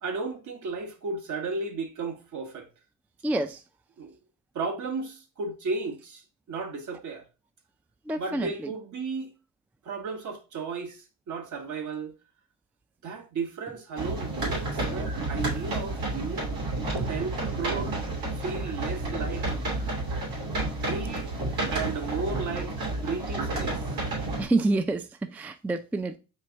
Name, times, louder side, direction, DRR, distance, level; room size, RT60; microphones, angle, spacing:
voice 1, 0.0-2.7 4.0-4.1 4.5-7.3 8.1-9.3 9.8-12.1 13.0-16.5 17.1-18.0 18.3-19.5 20.7-21.4 21.7-23.9, right 4 dB, 60° right, 1.1 m, -34 dB
voice 2, 3.2-3.6 8.1-8.5 17.0-17.1 24.4-26.2, right 2 dB, 5° right, 0.3 m, -27 dB
sound 1, 14.0-24.4, right 2 dB, 80° right, 2.5 m, -30 dB
4.5 x 2.5 x 4.4 m
cardioid pair, 80°, 34 cm